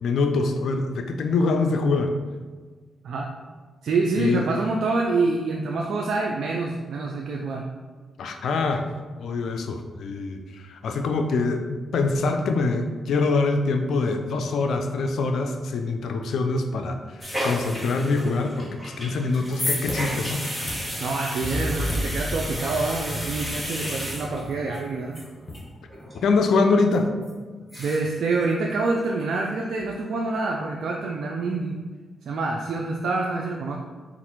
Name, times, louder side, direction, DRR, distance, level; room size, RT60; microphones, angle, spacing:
voice 1, 0.0-2.1 4.2-4.5 8.2-8.9 9.2-20.4 26.1-27.1, left 3 dB, 75° left, 5 dB, 0.4 m, -24 dB
voice 2, 3.8-7.7 21.0-25.3 27.8-31.8 32.2-33.8, right 3 dB, 75° right, 0 dB, 0.4 m, -26 dB
sound 1, 17.2-24.8 25.1-25.2 25.5-25.6 25.9-26.2 26.6-26.7 27.2-27.3 27.6-28.2 28.4-28.5 28.9-29.4 29.7-29.8, equal, 5° left, 1.5 m, -33 dB
sound 2, 19.2-25.5, left 1 dB, 40° left, 1.2 m, -36 dB
sound 3, 21.4-24.5, equal, 15° right, 1.1 m, -32 dB
4.0 x 2.4 x 4.4 m, 1.4 s
supercardioid pair, 55°, 0 cm